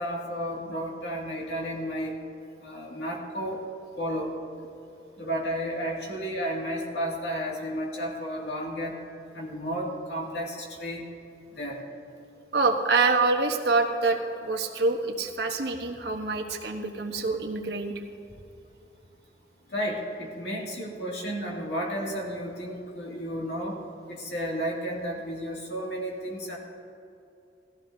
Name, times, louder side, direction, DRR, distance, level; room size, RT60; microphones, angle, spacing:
voice 1, 0.0-2.1 2.6-3.6 4.0-4.4 5.2-9.0 9.3-11.0 11.5-11.8 19.7-23.8 24.1-26.6, equal, 75° left, -2 dB, 2.4 m, -32 dB
voice 2, 12.5-18.0, right 3 dB, 70° right, 3 dB, 1.1 m, -26 dB
17.0 x 15.0 x 2.8 m, 2.7 s
head